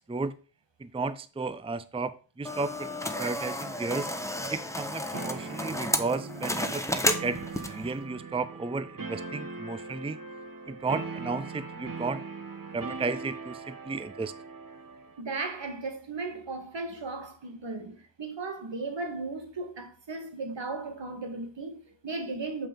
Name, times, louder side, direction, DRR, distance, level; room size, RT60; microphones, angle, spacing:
voice 1, 0.8-4.1 4.5-7.4 7.7-10.2 10.7-12.2 12.7-14.3, right 3 dB, 15° right, 0.5 m, -33 dB
sound 1, 2.4-7.9, left 1 dB, 5° left, 1.1 m, -32 dB
sound 2, 5.1-15.2, right 4 dB, 45° right, 1.2 m, -40 dB
voice 2, 15.2-22.7, right 3 dB, 75° right, 1.8 m, -36 dB
7.0 x 5.7 x 5.3 m
wide cardioid pair, 60°, 44 cm